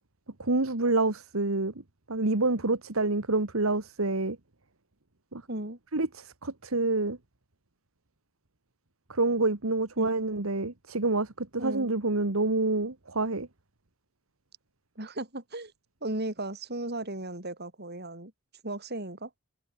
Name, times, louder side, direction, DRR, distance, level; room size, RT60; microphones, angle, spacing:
voice 1, 0.4-1.7 2.1-4.4 5.3-5.4 5.9-7.2 9.1-13.5, right 2 dB, 85° right, 1.9 m, -27 dB
voice 2, 5.5-5.8 10.0-10.1 11.6-11.9 15.0-15.7 16.0-18.3 18.6-19.3, right 1 dB, 50° right, 6.4 m, -35 dB
head